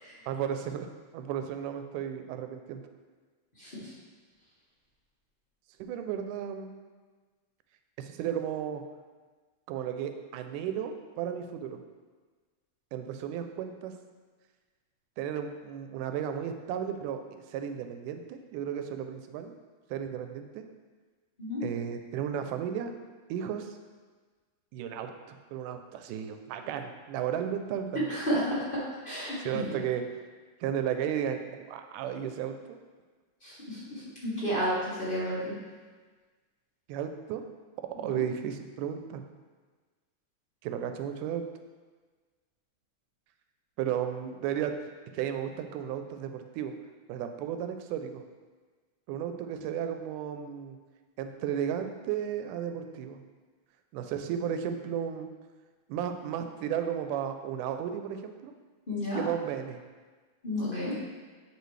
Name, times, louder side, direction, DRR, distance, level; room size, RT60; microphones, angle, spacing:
voice 1, 0.3-0.9 1.1-2.8 5.8-6.7 8.0-8.8 9.7-11.8 12.9-13.9 15.2-19.5 19.9-20.6 21.6-22.9 23.3-23.8 24.7-28.4 29.4-30.2 30.6-32.8 36.9-37.4 38.0-39.2 40.6-41.4 43.8-46.8 47.1-48.2 49.1-50.8 51.2-53.2 53.9-55.3 55.9-58.5 59.2-59.8, right 9 dB, 90° right, 7 dB, 2.1 m, -34 dB
voice 2, 28.1-28.4 29.0-29.7 33.4-35.5 58.9-59.2 60.4-60.9, equal, 25° left, -10 dB, 1.2 m, -32 dB
9.3 x 4.7 x 3.2 m, 1.4 s
omnidirectional pair, 3.6 m